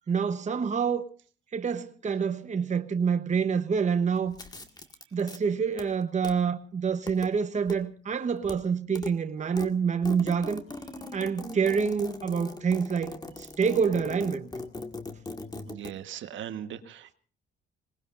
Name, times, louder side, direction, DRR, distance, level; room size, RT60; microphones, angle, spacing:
voice 1, 0.1-1.0 1.5-4.4 5.1-10.6 11.1-14.5, right 6 dB, 35° right, 1.1 m, -27 dB
sound 1, 4.3-5.4 5.7-6.3 6.9-7.3 7.6-7.8 8.1-8.6 8.8-9.1 9.4-15.9, left 2 dB, 20° left, 2.0 m, -40 dB
voice 2, 15.7-17.1, right 10 dB, 75° right, 1.4 m, -39 dB
26.0 x 19.5 x 2.6 m
cardioid pair, 90°, 20 cm